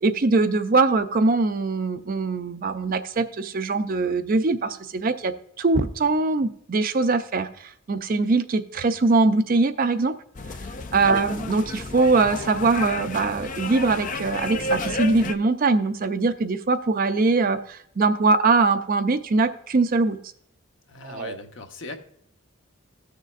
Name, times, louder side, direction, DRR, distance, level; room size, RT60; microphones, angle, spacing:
voice 1, 0.0-10.2 10.9-20.2 21.0-21.4, right 3 dB, 40° right, 9 dB, 0.5 m, -22 dB
sound 1, 10.3-15.3, left 2 dB, 35° left, 0.5 m, -31 dB
voice 2, 20.9-22.0, left 2 dB, 60° left, 5 dB, 1.0 m, -38 dB
15.5 x 6.5 x 2.4 m, 0.68 s
head